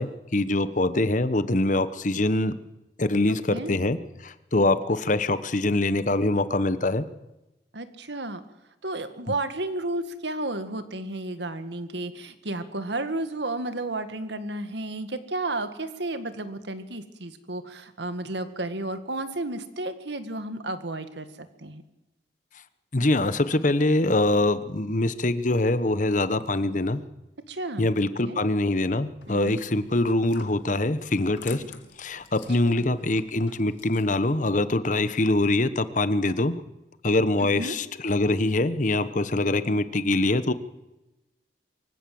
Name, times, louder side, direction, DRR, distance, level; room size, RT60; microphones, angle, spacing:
voice 1, 0.0-2.5 3.0-7.0 22.9-27.0 27.8-31.6 32.0-36.5 37.0-40.5, left 2 dB, 45° left, 13 dB, 1.1 m, -24 dB
voice 2, 3.3-3.7 7.7-8.4 8.8-21.8 27.5-27.9 28.2-28.4 29.3-29.6 32.6-32.9 37.4-37.8, right 2 dB, 75° right, 10 dB, 1.9 m, -32 dB
sound 1, 29.2-34.4, left 5 dB, 90° left, 2.2 m, -48 dB
23.5 x 15.5 x 7.8 m, 0.97 s
head